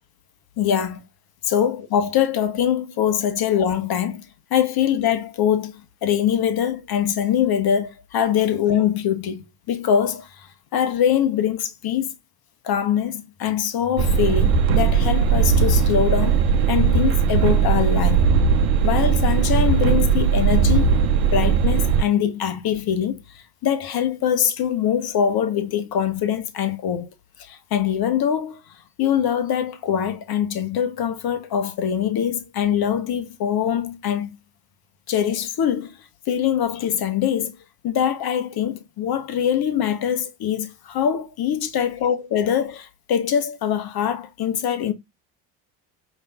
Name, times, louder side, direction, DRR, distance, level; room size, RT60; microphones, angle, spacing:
voice 1, 0.6-1.0 1.5-4.3 4.5-10.5 10.7-12.1 12.6-18.3 18.8-21.0 21.3-23.2 23.6-27.1 27.4-28.6 29.0-34.4 35.1-36.0 36.3-37.5 37.8-44.9, left 9 dB, 50° left, 1.1 m, -23 dB
sound 1, 14.0-22.0, right 6 dB, 75° right, 0.8 m, -18 dB
5.1 x 3.1 x 2.2 m
hypercardioid pair, 70°, 47 cm